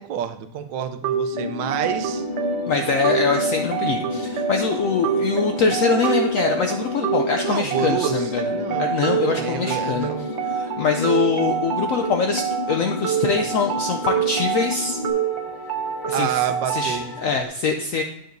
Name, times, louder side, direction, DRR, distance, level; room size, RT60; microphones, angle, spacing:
voice 1, 0.0-2.2 7.4-8.9 9.2-10.3 16.1-17.4, right 8 dB, 85° right, 9 dB, 1.3 m, -28 dB
sound 1, 1.0-17.0, right 8 dB, 65° right, 0.6 m, -27 dB
sound 2, 1.3-15.1, left 3 dB, 20° left, 1.6 m, -32 dB
sound 3, 1.8-17.5, left 2 dB, 35° left, 0.9 m, -36 dB
voice 2, 2.7-8.5 8.8-10.1 10.5-15.0 16.1-16.3 16.7-18.0, left 5 dB, 75° left, 5 dB, 0.7 m, -23 dB
9.0 x 7.0 x 2.6 m, 0.78 s
omnidirectional pair, 1.9 m